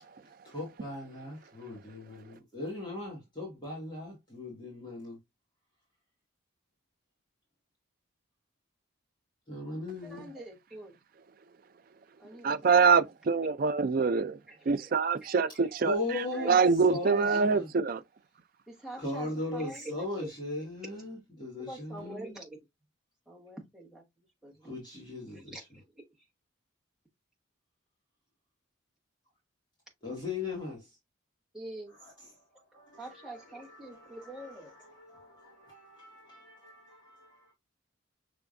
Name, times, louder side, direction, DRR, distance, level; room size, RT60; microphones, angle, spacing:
voice 1, 0.0-5.2 9.5-10.3 15.5-16.6 16.9-17.7 19.0-22.4 24.6-25.5 30.0-31.0 32.0-32.4 32.7-37.5, left 2 dB, 20° left, 1.8 m, -39 dB
voice 2, 10.0-10.9 12.2-12.5 14.5-14.9 15.2-15.8 16.3-16.7 17.0-17.1 18.7-20.0 20.2-20.3 21.6-22.6 23.3-24.0 24.4-24.8 25.3-26.3 31.5-31.9 33.0-34.7, right 2 dB, 5° right, 1.2 m, -45 dB
voice 3, 12.4-14.3 14.7-15.9 16.5-18.0, right 5 dB, 45° right, 0.3 m, -24 dB
5.9 x 3.4 x 2.5 m
head